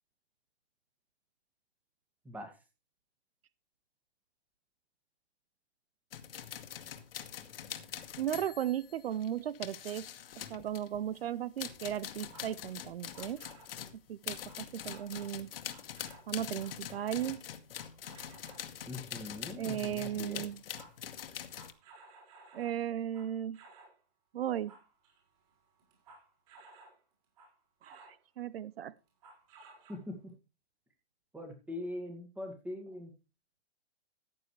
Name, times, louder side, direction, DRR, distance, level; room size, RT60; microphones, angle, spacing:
voice 1, 2.2-2.6 18.8-20.4 29.9-30.3 31.3-33.1, left 1 dB, 5° right, 5 dB, 2.0 m, -42 dB
sound 1, 6.1-11.2 11.6-21.7, left 9 dB, 60° left, 1.8 m, -44 dB
voice 2, 8.2-10.1 10.5-13.4 14.1-15.5 16.3-17.4 19.5-20.6 22.5-23.6 24.3-24.7 27.8-28.9, right 10 dB, 65° right, 20 dB, 0.7 m, -36 dB
sound 2, 12.2-13.7 14.4-15.4 15.7-18.7 19.8-20.1 20.3-24.0 24.4-27.0 27.4-28.2 29.1-30.3, right 3 dB, 35° right, 5.9 m, -57 dB
14.5 x 9.6 x 3.2 m, 0.30 s
hypercardioid pair, 165°, 33 cm